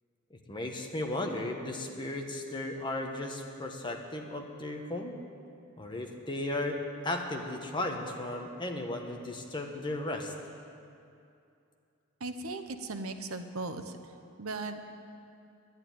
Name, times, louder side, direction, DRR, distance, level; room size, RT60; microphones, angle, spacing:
voice 1, 0.5-5.1 5.8-10.3, left 1 dB, 20° left, 2 dB, 1.2 m, -35 dB
voice 2, 12.2-14.0 14.4-14.9, right 3 dB, 80° right, 8 dB, 0.9 m, -37 dB
11.0 x 11.0 x 9.3 m, 2.6 s
head